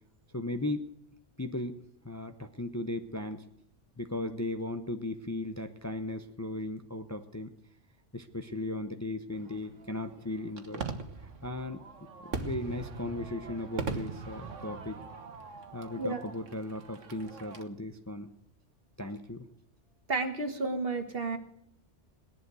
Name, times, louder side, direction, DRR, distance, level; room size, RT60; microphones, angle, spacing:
voice 1, 0.3-0.9 1.4-1.7 2.0-3.4 4.0-7.5 8.1-10.8 11.2-11.8 12.2-15.0 15.7-18.3 19.0-19.5, left 1 dB, 15° left, 7 dB, 0.8 m, -37 dB
Fireworks, 9.3-17.6, right 4 dB, 80° right, 1.8 m, -41 dB
voice 2, 16.0-16.3 20.1-21.4, right 3 dB, 50° right, 7 dB, 1.9 m, -32 dB
18.5 x 11.0 x 6.3 m, 0.76 s
omnidirectional pair, 1.3 m